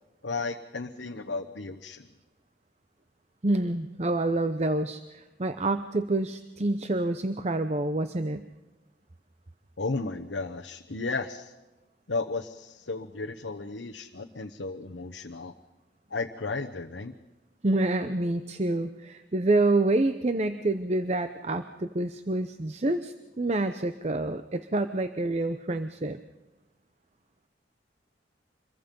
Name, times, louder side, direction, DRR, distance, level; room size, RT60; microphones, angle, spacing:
voice 1, 0.2-2.1 9.8-11.5 12.1-15.5 16.1-17.2, left 3 dB, 80° left, 3 dB, 1.0 m, -34 dB
voice 2, 3.4-8.4 17.6-26.2, right 2 dB, 35° right, 9 dB, 0.7 m, -27 dB
26.5 x 22.5 x 5.4 m, 1.1 s
head